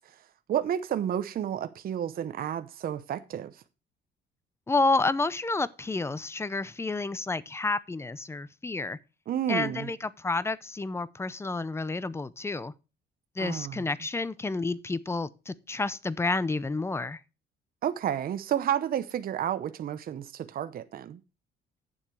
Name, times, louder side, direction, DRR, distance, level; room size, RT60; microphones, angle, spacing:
voice 1, 0.5-3.6 9.3-9.9 13.4-13.9 17.8-21.2, right 10 dB, 50° right, 0.7 m, -31 dB
voice 2, 4.7-9.0 9.5-12.7 13.4-17.2, left 3 dB, 15° left, 0.5 m, -30 dB
9.0 x 7.3 x 4.7 m
cardioid pair, 110°, 19 cm